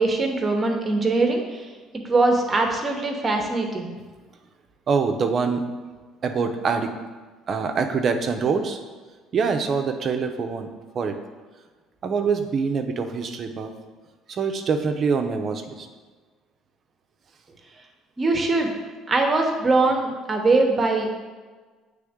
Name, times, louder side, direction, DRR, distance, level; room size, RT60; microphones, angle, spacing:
voice 1, 0.0-1.4 2.1-3.9 18.2-18.7 19.1-21.1, right 3 dB, 25° right, 2 dB, 1.0 m, -21 dB
voice 2, 4.9-5.6 6.2-6.9 7.5-8.8 9.3-10.7 10.9-11.2 12.0-13.7 14.3-15.9, right 5 dB, 45° right, 5 dB, 0.6 m, -24 dB
8.2 x 3.4 x 3.6 m, 1.4 s
cardioid pair, 110°, 0 cm